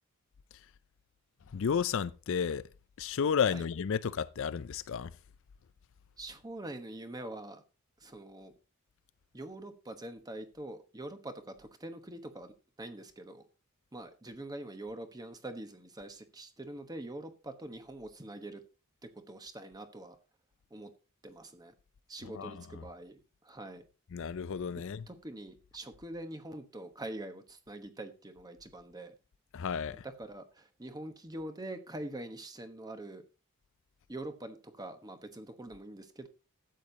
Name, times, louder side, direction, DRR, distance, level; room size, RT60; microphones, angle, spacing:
voice 1, 1.5-2.6 3.0-5.1 22.3-22.8 24.1-25.1 29.5-30.0, left 7 dB, 60° left, 0.4 m, -32 dB
voice 2, 6.2-7.6 8.0-8.5 9.3-12.5 12.8-13.5 13.9-18.6 19.0-20.2 20.7-20.9 21.2-21.7 22.1-23.8 25.1-29.1 29.9-33.2 34.1-36.3, right 1 dB, 20° right, 1.1 m, -44 dB
12.5 x 8.7 x 2.8 m
head